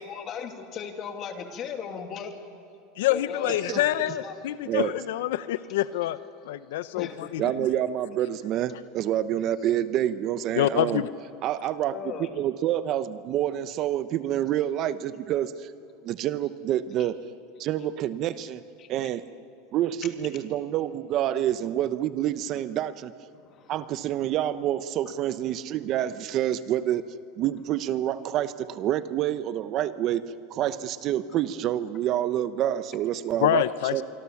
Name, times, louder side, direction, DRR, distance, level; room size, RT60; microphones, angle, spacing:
voice 1, 0.0-2.3 3.1-5.0 7.0-7.5 11.9-12.3 17.0-17.1 18.8-18.9 23.5-23.7, left 7 dB, 35° left, 5 dB, 2.7 m, -37 dB
voice 2, 3.0-6.2 6.4-7.7 10.5-11.1 33.4-34.0, left 13 dB, 80° left, 15 dB, 0.7 m, -26 dB
voice 3, 7.4-11.0 11.4-15.7 16.0-17.2 17.6-18.6 18.9-19.2 19.7-23.1 23.7-27.0 27.4-30.2 30.5-33.6 33.9-34.0, right 11 dB, 40° right, 13 dB, 0.9 m, -27 dB
25.5 x 24.5 x 7.3 m, 2.4 s
supercardioid pair, 140°, 0 cm